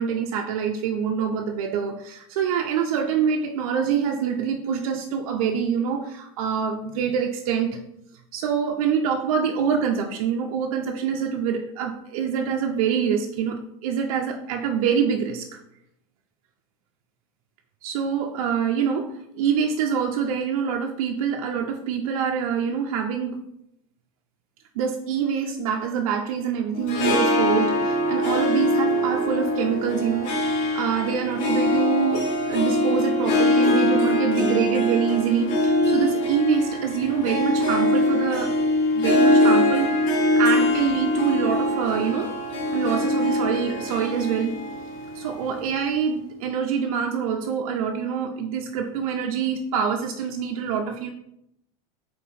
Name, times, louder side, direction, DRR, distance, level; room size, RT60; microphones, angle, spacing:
voice 1, 0.0-7.8 8.3-15.6 17.8-23.4 24.8-38.5 38.9-42.3 42.7-44.6 45.1-51.1, right 7 dB, 85° right, 3 dB, 0.5 m, -25 dB
Harp, 26.7-46.1, left 1 dB, 60° left, 1.0 m, -23 dB
3.8 x 2.8 x 4.1 m, 0.77 s
supercardioid pair, 140°, 18 cm